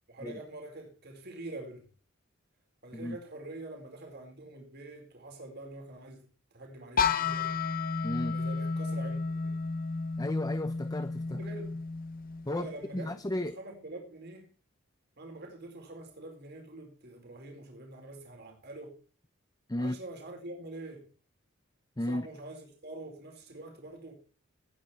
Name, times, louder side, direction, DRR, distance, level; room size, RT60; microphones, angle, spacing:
voice 1, 0.1-1.8 2.8-6.3 6.5-7.6 8.3-9.6 11.3-11.8 12.5-13.2 13.6-14.5 15.2-19.0 19.8-21.1 22.1-24.1, right 2 dB, 55° right, 4.4 m, -45 dB
sound 1, 7.0-12.8, left 5 dB, 45° left, 1.1 m, -32 dB
voice 2, 8.0-8.4 10.2-11.4 12.4-13.6 19.7-20.0 22.0-22.3, left 1 dB, 20° left, 0.7 m, -34 dB
18.0 x 9.9 x 4.3 m
head